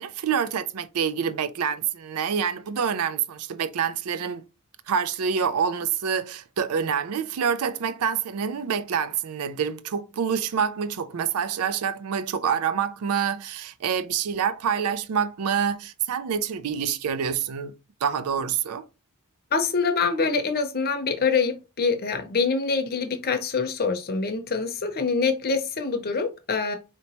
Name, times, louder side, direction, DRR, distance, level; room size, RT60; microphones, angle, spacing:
voice 1, 0.0-4.4 4.9-17.7 18.0-18.8, right 7 dB, 75° right, 0.4 m, -27 dB
voice 2, 19.5-26.8, left 4 dB, 45° left, 0.7 m, -25 dB
4.3 x 3.0 x 2.9 m
head